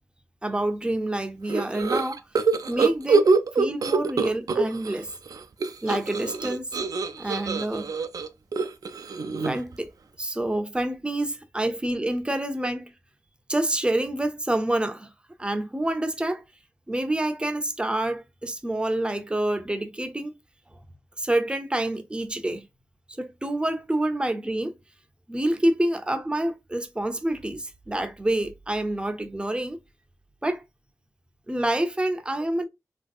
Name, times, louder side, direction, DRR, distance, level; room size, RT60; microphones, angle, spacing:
voice 1, 0.4-2.2 2.7-3.2 3.6-5.1 5.8-6.7 7.1-7.9 9.4-9.9 10.2-12.9 13.5-15.1 15.4-16.4 16.9-20.3 21.2-22.6 23.2-24.7 25.3-29.8 30.4-30.6 31.5-32.6, right 1 dB, 15° right, 0.5 m, -27 dB
sound 1, 1.5-5.0 5.3-9.7, right 4 dB, 75° right, 0.4 m, -24 dB
3.2 x 2.6 x 2.3 m
wide cardioid pair, 90°, 6 cm